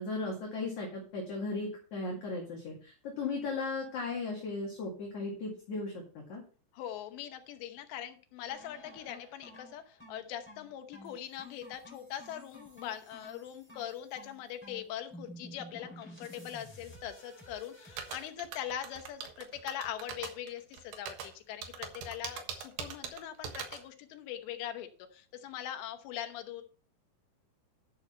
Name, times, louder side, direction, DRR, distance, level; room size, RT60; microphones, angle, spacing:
voice 1, 0.0-6.4, left 3 dB, 50° left, -2 dB, 3.1 m, -36 dB
voice 2, 6.7-26.6, left 10 dB, 85° left, 7 dB, 3.3 m, -42 dB
sound 1, 8.5-18.3, equal, 5° left, 3.3 m, -52 dB
sound 2, 18.0-23.8, right 7 dB, 70° right, 3.3 m, -41 dB
11.0 x 6.7 x 4.4 m, 0.39 s
omnidirectional pair, 4.9 m